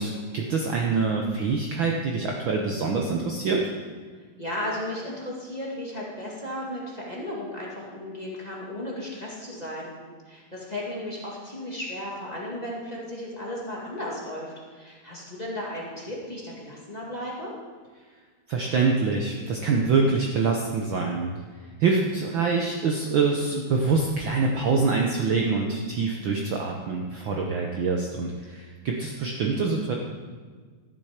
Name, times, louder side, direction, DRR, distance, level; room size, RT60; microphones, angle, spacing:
voice 1, 0.0-3.7 18.5-21.3 21.8-30.0, right 4 dB, 90° right, 0 dB, 1.0 m, -25 dB
voice 2, 4.4-9.9 10.3-17.5 22.4-22.5, left 1 dB, 20° left, -5 dB, 1.4 m, -35 dB
13.0 x 7.6 x 5.0 m, 1.5 s
omnidirectional pair, 3.4 m